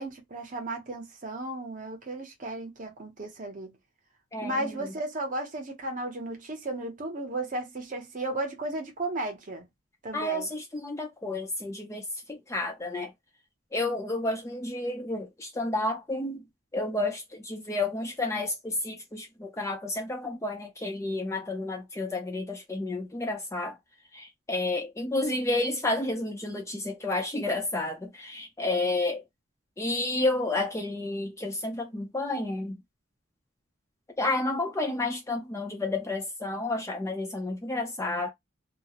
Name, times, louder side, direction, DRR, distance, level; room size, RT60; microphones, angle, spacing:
voice 1, 0.0-3.8 4.4-9.7 10.0-10.5, right 2 dB, 40° right, 0.7 m, -34 dB
voice 2, 4.3-4.8 10.1-13.1 13.7-16.4 16.7-23.8 24.1-29.2 29.8-32.8 34.2-38.3, left 2 dB, 15° left, 0.4 m, -31 dB
2.3 x 2.0 x 2.8 m
head